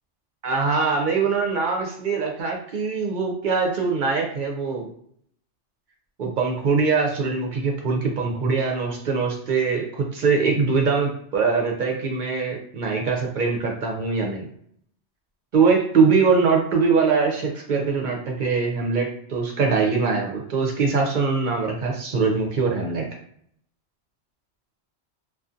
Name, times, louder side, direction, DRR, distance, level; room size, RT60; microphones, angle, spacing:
voice 1, 0.4-4.9 6.2-14.5 15.5-23.0, right 4 dB, 55° right, 0 dB, 0.6 m, -22 dB
2.6 x 2.3 x 2.4 m, 0.64 s
omnidirectional pair, 1.2 m